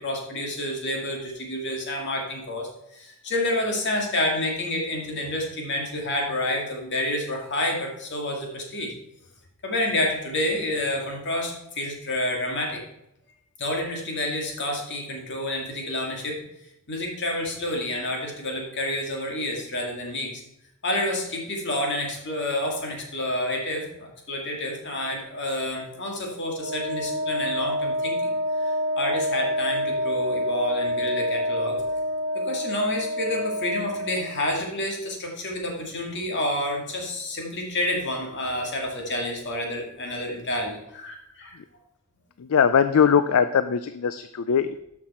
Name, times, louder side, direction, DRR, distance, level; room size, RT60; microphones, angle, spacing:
voice 1, 0.0-8.9 9.6-12.8 13.6-16.4 16.9-20.4 20.8-28.3 28.6-31.8 32.3-41.5, left 1 dB, 55° left, 0 dB, 2.3 m, -29 dB
Wind instrument woodwind instrument, 26.5-34.3, left 1 dB, 55° right, 1.0 m, -27 dB
voice 2, 42.4-44.8, left 7 dB, 70° left, 12 dB, 0.4 m, -21 dB
12.0 x 6.0 x 4.3 m, 0.82 s
head